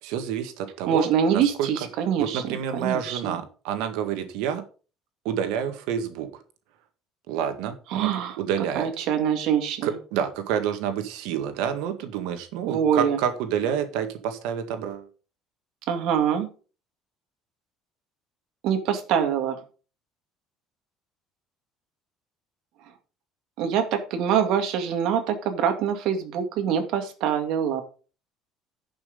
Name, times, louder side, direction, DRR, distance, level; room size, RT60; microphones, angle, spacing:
voice 1, 0.0-1.7 2.2-4.6 5.3-6.4 7.3-8.9 9.8-15.1, right 8 dB, 90° right, 8 dB, 1.8 m, -28 dB
voice 2, 0.9-3.4 7.9-8.4 8.7-9.9 12.7-13.2 15.9-16.5 18.6-19.6 23.6-27.8, right 8 dB, 60° right, 6 dB, 2.1 m, -24 dB
11.0 x 5.8 x 5.2 m, 0.36 s
cardioid pair, 160°, 0 cm